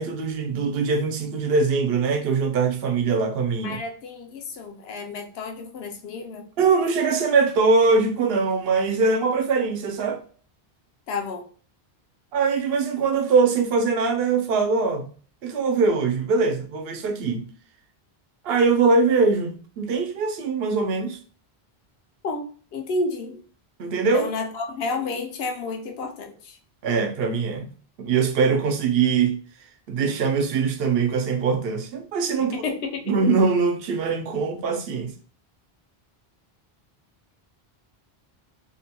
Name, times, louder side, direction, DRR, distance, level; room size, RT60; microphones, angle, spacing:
voice 1, 0.0-3.8 6.6-10.2 12.3-15.1 15.4-17.4 18.4-21.2 23.8-24.3 26.8-27.7 28.0-29.4 29.9-32.6 33.1-35.1, right 4 dB, 75° right, 0.8 m, -22 dB
voice 2, 3.6-6.5 11.1-11.4 22.2-23.4 24.1-26.6 32.4-33.0, left 3 dB, 75° left, 0.8 m, -31 dB
2.7 x 2.2 x 2.8 m
omnidirectional pair, 1.1 m